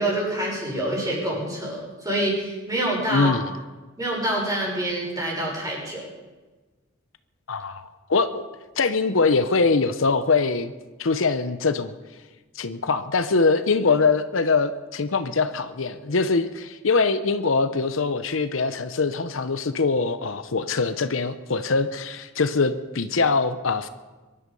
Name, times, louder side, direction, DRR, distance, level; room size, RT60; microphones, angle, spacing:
voice 1, 0.0-3.4 4.0-6.1, right 1 dB, 20° right, -3 dB, 6.1 m, -26 dB
voice 2, 3.1-3.5 7.5-8.4 8.8-10.7 11.0-11.9 12.5-23.9, left 4 dB, 75° left, 11 dB, 0.8 m, -23 dB
23.0 x 11.5 x 5.5 m, 1.2 s
head